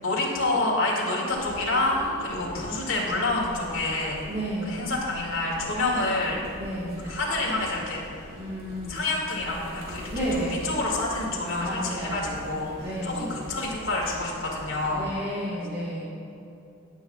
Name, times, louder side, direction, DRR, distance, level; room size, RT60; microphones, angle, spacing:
voice 1, 0.0-4.2 4.6-6.4 7.0-8.3 8.9-15.1, left 2 dB, 65° left, -4 dB, 2.2 m, -28 dB
sound 1, 1.3-15.2, equal, 70° right, 2.4 m, -43 dB
voice 2, 4.3-4.9 6.6-7.1 8.4-9.0 10.1-10.7 11.6-12.4 12.8-13.4 14.9-16.0, equal, 25° right, -9 dB, 1.5 m, -32 dB
17.5 x 8.1 x 2.4 m, 2.8 s
head